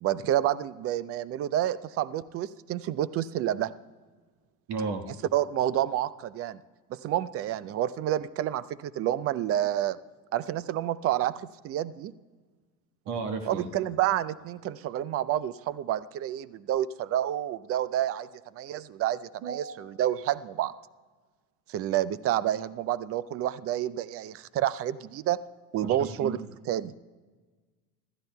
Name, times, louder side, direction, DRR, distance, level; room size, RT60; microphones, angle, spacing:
voice 1, 0.0-3.7 5.3-6.6 6.9-10.0 10.3-11.3 11.6-12.1 13.5-18.3 18.6-20.7 21.7-25.4 25.7-26.9, right 12 dB, 30° right, 18 dB, 0.5 m, -29 dB
voice 2, 4.7-5.0 13.0-13.7 19.4-19.7 25.8-26.4, right 4 dB, 50° right, 5 dB, 1.6 m, -33 dB
26.5 x 13.5 x 2.3 m, 1.4 s
hypercardioid pair, 80°, 49 cm